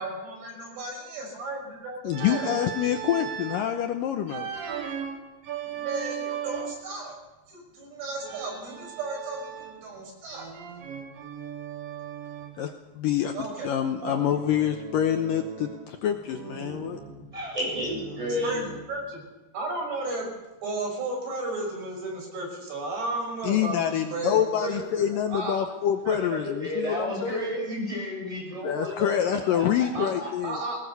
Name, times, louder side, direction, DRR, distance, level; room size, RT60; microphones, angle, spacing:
voice 1, 0.0-2.5 5.7-7.2 7.5-10.5 13.3-13.7 14.0-14.2 17.0-17.1 18.4-19.2 19.5-20.3 20.6-25.6 26.0-26.4 26.8-26.9 29.9-30.1 30.4-30.8, right 2 dB, 85° right, 0 dB, 8.3 m, -34 dB
voice 2, 2.0-4.5 12.6-17.0 23.4-27.5 28.6-30.6, left 10 dB, 75° left, 6 dB, 2.2 m, -26 dB
Organ, 2.1-3.7 4.3-6.9 8.2-9.9 10.3-12.6 14.2-16.0 16.3-19.0, right 8 dB, 65° right, 3.2 m, -38 dB
voice 3, 17.3-18.6 26.4-29.6 30.1-30.3, equal, 10° right, -3 dB, 7.9 m, -31 dB
20.0 x 19.5 x 6.9 m, 1.1 s
omnidirectional pair, 4.8 m